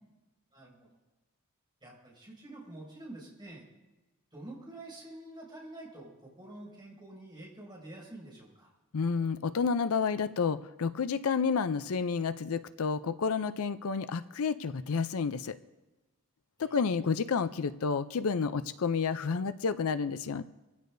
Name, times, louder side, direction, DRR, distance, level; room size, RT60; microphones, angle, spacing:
voice 1, 0.5-1.0 1.8-3.6 4.3-8.7 16.6-17.1, right 1 dB, 20° right, -4 dB, 6.1 m, -48 dB
voice 2, 8.9-15.6 16.6-20.4, left 5 dB, 70° left, 12 dB, 0.5 m, -30 dB
25.0 x 16.0 x 2.7 m, 1.1 s
head